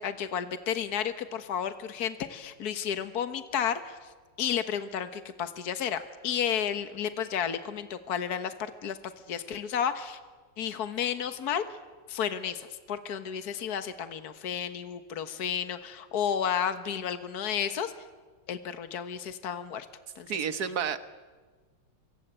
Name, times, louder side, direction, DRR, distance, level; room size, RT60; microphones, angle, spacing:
voice 1, 0.0-4.1 4.4-9.0 9.3-10.2 10.6-11.6 12.1-17.9 18.5-19.9 20.1-20.4, left 8 dB, 60° left, 10 dB, 1.8 m, -32 dB
voice 2, 20.3-21.0, right 7 dB, 60° right, 11 dB, 1.8 m, -30 dB
27.5 x 23.0 x 8.9 m, 1.4 s
omnidirectional pair, 2.0 m